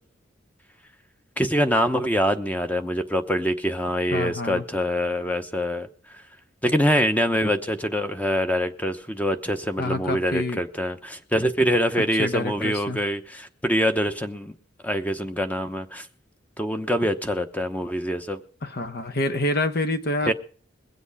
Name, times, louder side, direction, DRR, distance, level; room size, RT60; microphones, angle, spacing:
voice 1, 1.4-5.9 6.6-14.5 14.8-16.1 16.6-18.4 20.3-20.4, equal, 10° left, 0.9 m, -24 dB
voice 2, 4.1-4.6 9.8-10.6 12.2-13.0 18.6-20.3, left 2 dB, 55° left, 1.1 m, -27 dB
21.5 x 8.0 x 4.8 m
head